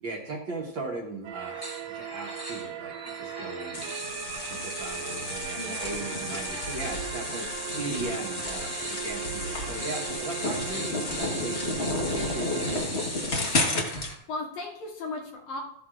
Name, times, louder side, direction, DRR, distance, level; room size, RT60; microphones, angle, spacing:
voice 1, 0.0-11.8 12.1-13.0, right 3 dB, 55° right, -1 dB, 1.4 m, -38 dB
sound 1, 1.2-12.8, right 12 dB, 75° right, 1.6 m, -39 dB
sound 2, 1.4-14.2, equal, 5° right, 1.7 m, -42 dB
sound 3, 3.7-14.1, left 2 dB, 60° left, 0.7 m, -32 dB
voice 2, 5.6-5.9 13.3-15.6, left 3 dB, 80° left, -3 dB, 3.9 m, -38 dB
14.0 x 9.4 x 2.5 m, 0.75 s
omnidirectional pair, 3.4 m